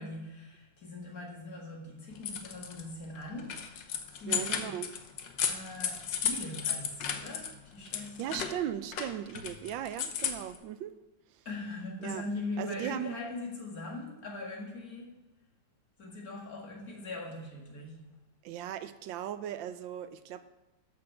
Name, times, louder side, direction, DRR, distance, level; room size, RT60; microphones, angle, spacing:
voice 1, 0.0-4.8 5.5-8.5 11.5-15.1 16.0-18.0, left 2 dB, 50° left, -1 dB, 2.4 m, -41 dB
sound 1, 2.1-2.8 3.2-7.5 7.9-10.6, left 8 dB, 75° left, 1.5 m, -34 dB
voice 2, 4.3-4.9 7.9-10.9 12.0-12.2 12.6-13.2 18.4-20.4, right 11 dB, 80° right, 12 dB, 1.3 m, -37 dB
13.5 x 6.4 x 4.4 m, 1.1 s
omnidirectional pair, 2.1 m